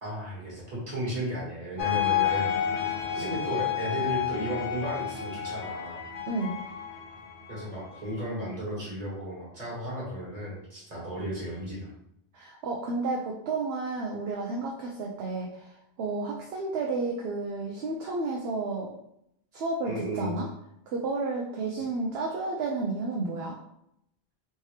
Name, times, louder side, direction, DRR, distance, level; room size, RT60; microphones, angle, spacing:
voice 1, 0.0-2.5 3.1-6.0 7.5-11.9 19.8-20.4 21.7-21.9, right 1 dB, 35° right, -7 dB, 1.6 m, -34 dB
sound 1, 1.8-8.2, left 9 dB, 50° left, 0.7 m, -30 dB
voice 2, 12.3-19.0 19.5-20.5 20.9-23.6, right 3 dB, 70° right, 0 dB, 0.8 m, -31 dB
3.4 x 2.7 x 3.2 m, 0.76 s
omnidirectional pair, 1.1 m